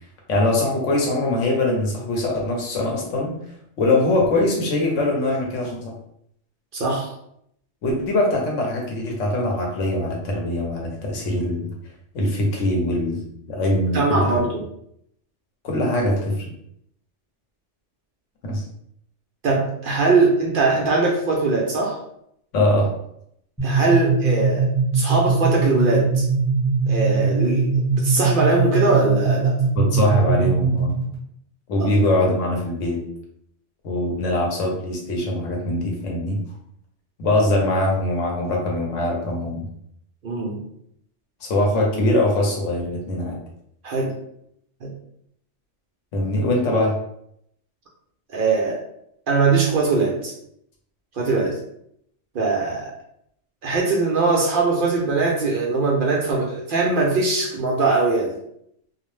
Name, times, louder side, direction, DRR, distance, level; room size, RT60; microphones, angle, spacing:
voice 1, 0.3-3.3 3.8-5.9 7.8-11.7 12.1-13.2 13.5-14.4 15.6-16.5 18.4-18.6 22.5-22.9 29.7-30.9 31.7-33.0 33.8-36.4 37.2-39.7 41.4-43.4 46.1-47.0, left 1 dB, 90° left, -1 dB, 1.1 m, -22 dB
voice 2, 6.7-7.1 13.9-14.6 19.4-22.0 23.6-24.7 24.9-26.3 26.9-29.5 40.2-40.6 43.8-44.1 44.8-44.9 48.3-48.8 49.3-50.3 51.2-51.5 52.3-52.9 53.6-58.4, right 3 dB, 60° right, -1 dB, 0.6 m, -21 dB
sound 1, 23.6-31.1, right 4 dB, 5° right, 1.0 m, -21 dB
2.5 x 2.0 x 3.1 m, 0.72 s
omnidirectional pair, 1.2 m